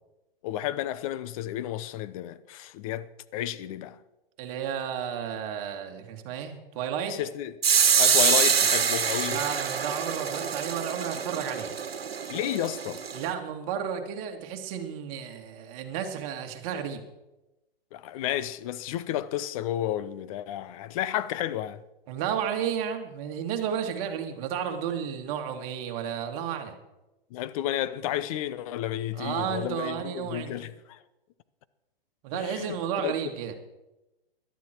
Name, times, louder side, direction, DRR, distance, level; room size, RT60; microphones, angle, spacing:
voice 1, 0.4-4.0 7.1-7.5 8.0-9.4 12.3-13.0 17.9-21.8 27.3-31.0 32.3-33.1, left 12 dB, 35° left, 0.8 m, -32 dB
voice 2, 4.4-7.2 9.2-11.8 13.1-17.0 22.1-26.8 29.2-30.5 32.2-33.5, right 8 dB, 35° right, 2.1 m, -32 dB
sound 1, 7.6-13.3, right 7 dB, 85° right, 1.5 m, -25 dB
17.5 x 12.0 x 4.5 m
hypercardioid pair, 135°, 29 cm